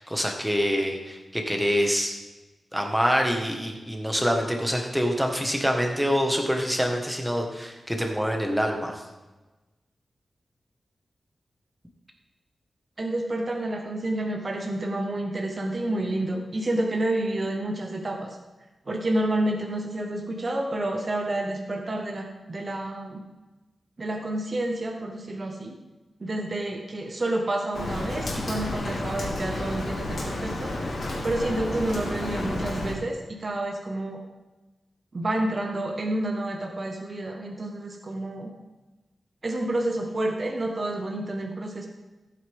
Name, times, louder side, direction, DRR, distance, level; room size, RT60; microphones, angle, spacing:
voice 1, 0.0-2.2 2.7-9.0, equal, 5° right, 2 dB, 1.6 m, -26 dB
voice 2, 13.0-18.4 18.9-23.2 24.0-25.8 26.2-30.7 31.2-34.2 35.1-38.5 39.4-41.9, right 1 dB, 40° right, 1 dB, 1.4 m, -29 dB
Rain, 27.7-32.9, left 1 dB, 70° left, 3.0 m, -31 dB
15.0 x 9.1 x 3.7 m, 1.1 s
wide cardioid pair, 120°, 0 cm